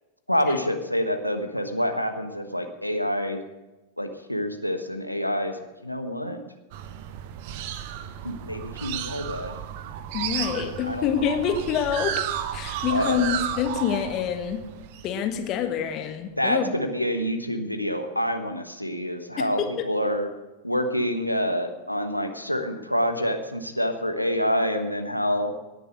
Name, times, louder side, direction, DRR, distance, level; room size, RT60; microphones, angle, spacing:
voice 1, 0.3-3.4 4.0-5.6 5.8-6.4 8.2-9.6 10.5-11.2 12.9-13.3 16.4-20.3 20.6-25.5, equal, 90° left, 6 dB, 1.2 m, -27 dB
sound 1, 6.7-15.8, right 10 dB, 50° right, 0.8 m, -33 dB
voice 2, 10.1-12.2 12.5-14.6 15.0-16.7 19.4-19.8, left 8 dB, 35° left, 7 dB, 1.5 m, -26 dB
18.5 x 6.8 x 6.4 m, 1.1 s
figure-of-eight pair, 90°, 0 cm